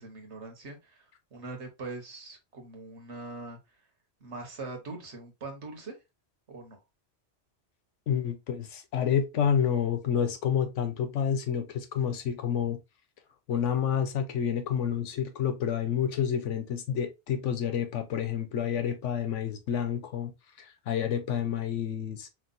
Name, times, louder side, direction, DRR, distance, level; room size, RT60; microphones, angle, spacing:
voice 1, 0.0-3.6 4.2-6.0 6.5-6.8, right 3 dB, 70° right, 1.6 m, -42 dB
voice 2, 8.1-12.8 13.5-20.3 20.6-22.3, left 8 dB, 85° left, 1.1 m, -29 dB
4.7 x 3.3 x 2.6 m
omnidirectional pair, 1.2 m